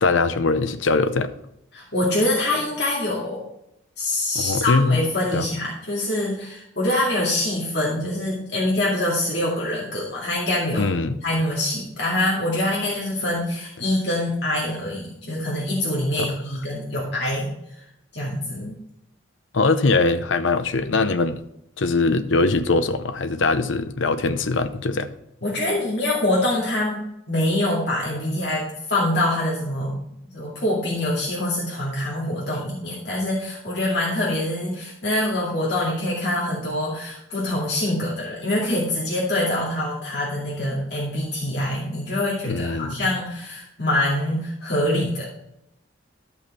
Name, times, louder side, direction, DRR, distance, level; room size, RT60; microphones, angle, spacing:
voice 1, 0.0-1.3 4.3-5.0 5.3-5.4 10.7-11.1 16.2-16.3 19.5-21.4 21.8-25.1 42.5-43.0, left 3 dB, 80° left, 0.7 m, -21 dB
voice 2, 1.7-3.4 4.0-10.9 11.2-17.5 17.8-17.9 18.1-18.7 25.4-30.0 30.3-45.4, left 1 dB, 55° left, 2.3 m, -25 dB
12.0 x 5.6 x 4.2 m
head